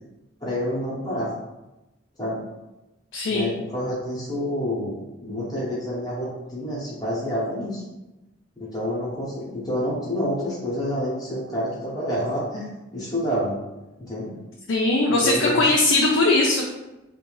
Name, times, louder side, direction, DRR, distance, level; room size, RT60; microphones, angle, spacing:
voice 1, 0.4-1.3 2.2-2.4 3.3-7.8 8.6-12.7 12.9-13.6 14.0-14.3 15.1-15.7, equal, 20° left, -7 dB, 0.7 m, -28 dB
voice 2, 3.1-3.5 14.7-16.6, left 2 dB, 65° left, -2 dB, 0.4 m, -20 dB
2.6 x 2.2 x 3.1 m, 0.99 s
head